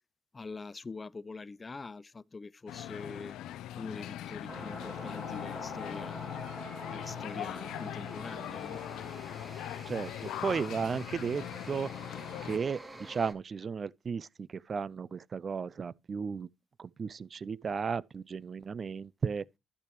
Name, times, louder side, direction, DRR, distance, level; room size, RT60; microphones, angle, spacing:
voice 1, 0.3-3.4 3.8-6.4 6.9-8.9, left 4 dB, 30° left, 0.4 m, -44 dB
sound 1, 2.7-12.6, left 12 dB, 85° left, 0.4 m, -41 dB
sound 2, 4.5-13.3, right 2 dB, 15° right, 1.7 m, -47 dB
Purr / Meow, 6.3-12.8, right 3 dB, 75° right, 5.9 m, -67 dB
voice 2, 9.9-11.9 12.4-16.5 16.8-19.4, right 6 dB, 45° right, 0.4 m, -35 dB
12.0 x 6.6 x 3.0 m
cardioid pair, 90°, 0 cm